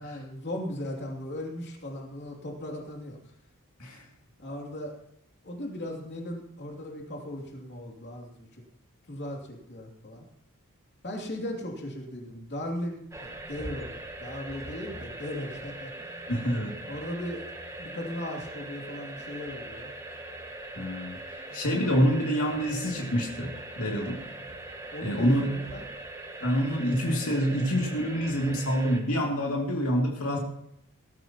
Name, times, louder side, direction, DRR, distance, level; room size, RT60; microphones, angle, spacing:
voice 1, 0.0-3.2 4.4-4.9 5.4-8.6 9.1-10.3 11.0-13.9 14.2-15.9 16.9-17.4 17.8-19.9 21.9-22.3 24.9-25.9 26.6-27.2, left 1 dB, 50° left, 0 dB, 2.8 m, -37 dB
sound 1, 13.1-29.0, right 2 dB, 15° right, 1.3 m, -41 dB
voice 2, 16.3-16.7 20.8-24.2 25.0-25.6 26.4-30.4, equal, 80° left, -1 dB, 2.5 m, -27 dB
20.0 x 13.0 x 2.9 m, 0.75 s
head